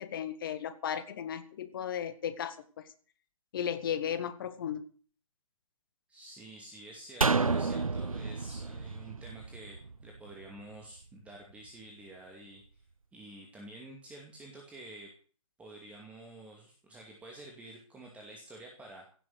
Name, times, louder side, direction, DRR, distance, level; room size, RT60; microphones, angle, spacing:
voice 1, 0.0-2.6 3.5-4.8, left 9 dB, 40° left, 12 dB, 1.8 m, -35 dB
voice 2, 6.1-12.8 13.1-15.1 15.6-19.1, right 1 dB, 5° right, 0 dB, 2.4 m, -49 dB
sound 1, 7.2-10.5 10.8-10.9, right 4 dB, 85° right, 0.7 m, -31 dB
16.5 x 7.7 x 8.2 m, 0.43 s
figure-of-eight pair, 130°, 17 cm